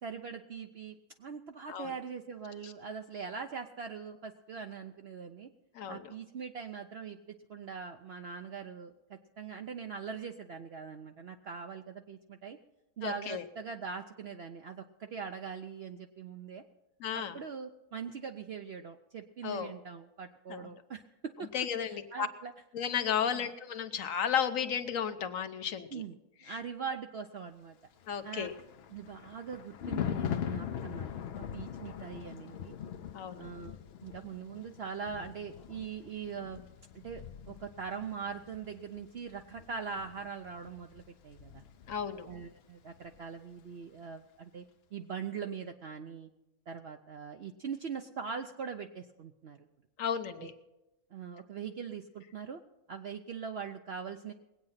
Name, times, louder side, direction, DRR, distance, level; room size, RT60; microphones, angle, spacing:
voice 1, 0.0-5.5 5.9-7.2 7.5-12.6 13.0-16.6 17.1-22.5 23.3-23.5 25.9-26.2 26.4-27.8 28.2-28.5 28.9-31.1 31.5-32.8 33.4-36.7 36.9-41.6 42.2-44.6 44.9-46.3 46.7-49.7 50.4-50.5 51.1-52.6 52.9-54.3, right 6 dB, 55° right, 4 dB, 0.8 m, -42 dB
voice 2, 13.0-13.4 17.0-17.4 19.4-19.7 20.5-20.7 21.5-22.3 22.7-26.0 28.1-28.5 33.1-33.5 41.9-42.3 50.0-50.5, left 8 dB, 70° left, 10 dB, 1.3 m, -33 dB
Thunder, 28.1-42.6 42.9-43.2, left 9 dB, 55° left, 0.8 m, -42 dB
20.5 x 8.7 x 5.7 m, 0.95 s
omnidirectional pair, 1.4 m